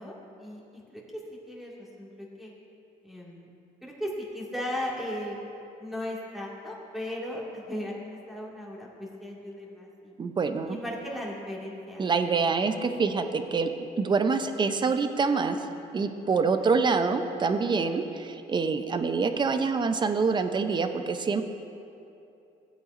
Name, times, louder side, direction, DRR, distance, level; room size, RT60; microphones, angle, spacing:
voice 1, 0.0-2.5 3.0-3.5 3.8-5.4 5.8-10.1 10.7-12.2 12.8-13.0, left 1 dB, ahead, -4 dB, 2.1 m, -37 dB
voice 2, 10.2-10.8 12.0-13.7 14.0-15.7 15.9-21.4, right 4 dB, 25° right, 8 dB, 0.6 m, -26 dB
17.0 x 8.1 x 2.6 m, 2.7 s
cardioid pair, 110°, 17 cm